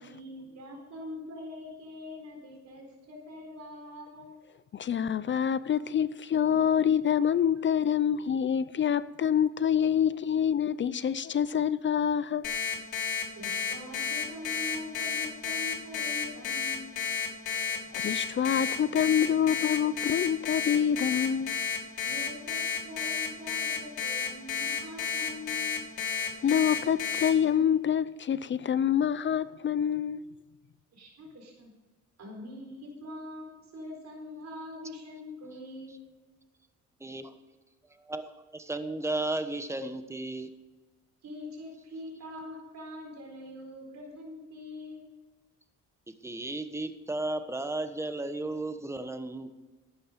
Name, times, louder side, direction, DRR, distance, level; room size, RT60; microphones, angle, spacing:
voice 1, 0.0-4.3 7.2-7.3 13.3-16.8 22.0-25.7 30.9-31.7 32.2-36.0 41.2-45.1, left 1 dB, 65° right, 4.3 m, -43 dB
voice 2, 4.7-12.5 17.7-21.6 26.1-30.2, left 8 dB, 40° left, 0.5 m, -26 dB
Alarm, 12.4-27.3, left 7 dB, 85° left, 2.8 m, -31 dB
voice 3, 38.0-40.5 46.2-49.5, right 2 dB, 10° right, 1.1 m, -34 dB
12.0 x 9.0 x 5.1 m
cardioid pair, 90°, 30 cm